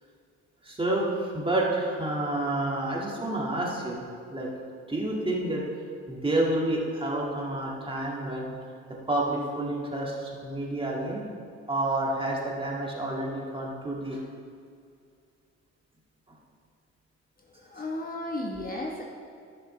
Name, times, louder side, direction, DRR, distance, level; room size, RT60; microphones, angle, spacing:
voice 1, 0.6-4.0 4.3-4.5 4.9-5.6 6.1-8.6 9.1-11.2 11.7-14.2 16.3-16.4 17.7-17.8, right 1 dB, 15° right, -3 dB, 1.9 m, -29 dB
voice 2, 17.7-19.0, left 1 dB, 30° left, -1 dB, 1.2 m, -33 dB
14.5 x 6.7 x 3.3 m, 2.3 s
cardioid pair, 90°, 30 cm